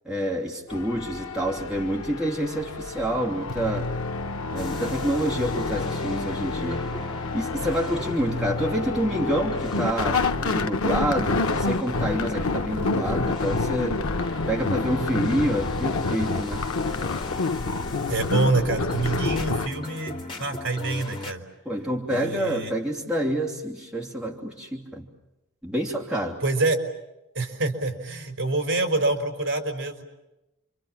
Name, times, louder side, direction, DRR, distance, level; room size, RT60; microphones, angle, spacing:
voice 1, 0.0-3.9 4.5-6.9 7.3-14.0 14.5-16.6 21.6-25.1 25.6-26.4, right 1 dB, 5° right, -3 dB, 3.0 m, -28 dB
sound 1, 0.7-19.7, left 3 dB, 90° left, 1.0 m, -28 dB
sound 2, 4.6-21.3, left 1 dB, 25° left, 2.1 m, -40 dB
voice 2, 18.1-21.4 22.1-22.7 26.4-26.8 27.3-30.0, right 2 dB, 60° right, 5 dB, 4.1 m, -26 dB
29.5 x 25.5 x 7.4 m, 0.96 s
head